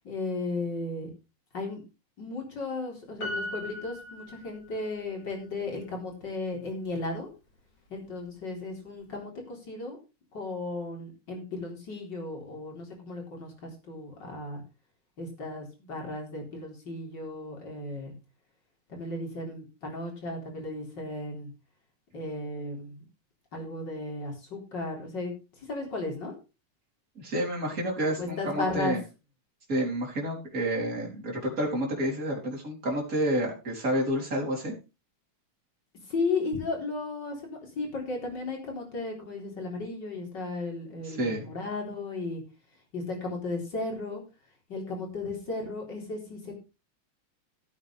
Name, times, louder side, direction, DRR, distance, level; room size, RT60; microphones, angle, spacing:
voice 1, 0.0-1.1 1.5-1.8 2.2-7.3 7.9-10.0 10.3-14.6 15.2-18.1 18.9-21.5 22.1-23.0 23.5-26.3 28.2-29.0 36.1-42.4 42.9-44.2 44.7-46.6, left 3 dB, 35° left, 1 dB, 4.3 m, -35 dB
Piano, 3.2-5.0 5.3-5.4, left 1 dB, 50° left, 5.5 m, -38 dB
voice 2, 27.2-29.0 29.7-34.7 41.0-41.5, right 1 dB, 25° right, -3 dB, 4.4 m, -29 dB
16.0 x 8.6 x 3.4 m, 0.29 s
omnidirectional pair, 3.4 m